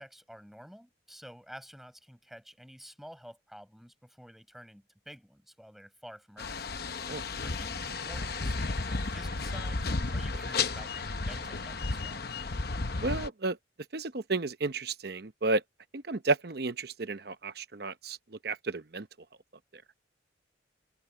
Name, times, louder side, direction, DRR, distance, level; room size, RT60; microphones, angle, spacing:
voice 1, 0.0-6.6 7.4-12.2, equal, ahead, 5.5 m, -50 dB
sound 1, 6.4-13.3, left 3 dB, 50° left, 0.9 m, -33 dB
sound 2, 7.8-12.2, right 3 dB, 70° right, 6.7 m, -51 dB
voice 2, 13.0-13.6 13.9-15.6 15.9-18.2 18.4-19.1, right 3 dB, 55° right, 0.8 m, -32 dB
head